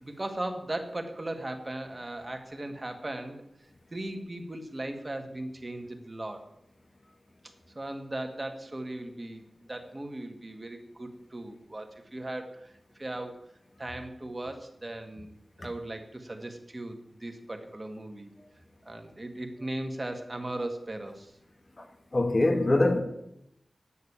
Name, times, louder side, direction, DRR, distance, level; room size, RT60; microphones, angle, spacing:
voice 1, 0.0-3.4 3.9-6.5 7.7-9.4 9.7-13.4 13.8-15.3 15.6-18.3 18.8-21.3, right 1 dB, 30° right, 1.6 m, -37 dB
voice 2, 22.1-23.0, left 2 dB, 35° left, 1.7 m, -23 dB
9.8 x 6.4 x 8.6 m
wide cardioid pair, 85°, 0 cm